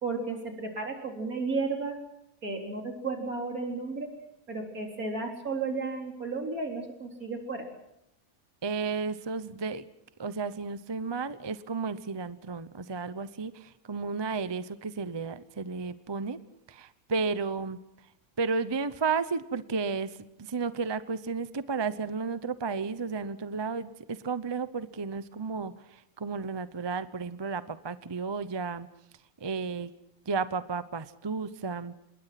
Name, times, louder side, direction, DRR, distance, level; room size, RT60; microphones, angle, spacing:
voice 1, 0.0-2.0 2.4-4.1 4.5-7.7, right 3 dB, 75° right, 2 dB, 4.3 m, -33 dB
voice 2, 8.6-9.9 10.2-16.4 16.7-17.8 18.4-28.9 29.4-29.9 30.3-31.9, right 4 dB, 25° right, 13 dB, 0.7 m, -33 dB
27.5 x 21.0 x 5.9 m, 0.83 s
omnidirectional pair, 1.5 m